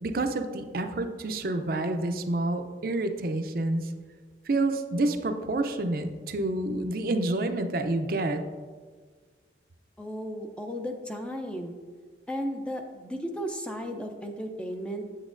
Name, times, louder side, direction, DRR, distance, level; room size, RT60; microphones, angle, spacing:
voice 1, 0.0-3.9 4.5-8.4, right 2 dB, 50° right, 7 dB, 0.5 m, -28 dB
voice 2, 10.0-11.8 12.3-15.1, equal, 5° left, 4 dB, 0.4 m, -34 dB
8.2 x 7.9 x 2.5 m, 1.5 s
head